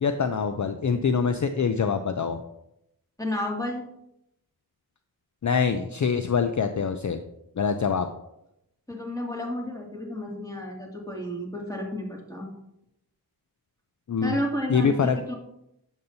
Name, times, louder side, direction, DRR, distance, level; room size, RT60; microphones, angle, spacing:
voice 1, 0.0-2.4 5.4-7.2 7.6-8.1 14.1-14.4 14.7-15.2, left 6 dB, 50° left, 8 dB, 0.5 m, -24 dB
voice 2, 3.2-3.9 8.9-12.5 14.2-15.3, left 1 dB, 10° left, -1 dB, 2.1 m, -32 dB
7.6 x 7.2 x 2.6 m, 0.82 s
wide cardioid pair, 45°, 39 cm